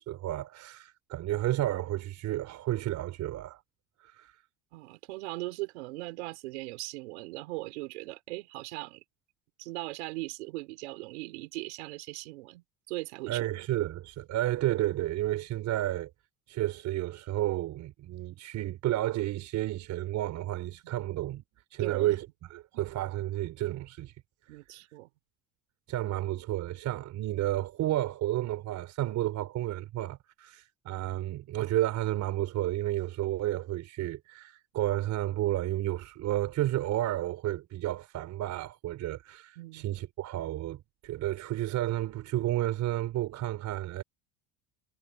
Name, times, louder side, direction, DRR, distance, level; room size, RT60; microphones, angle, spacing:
voice 1, 0.0-3.6 4.0-4.3 13.3-16.1 16.5-21.4 21.7-24.1 25.9-44.0, right 14 dB, 60° right, 4.8 m, -31 dB
voice 2, 4.7-9.0 9.6-13.4 21.8-22.2 24.5-25.1 39.6-39.9, right 22 dB, 85° right, 4.5 m, -39 dB
supercardioid pair, 95°, 33 cm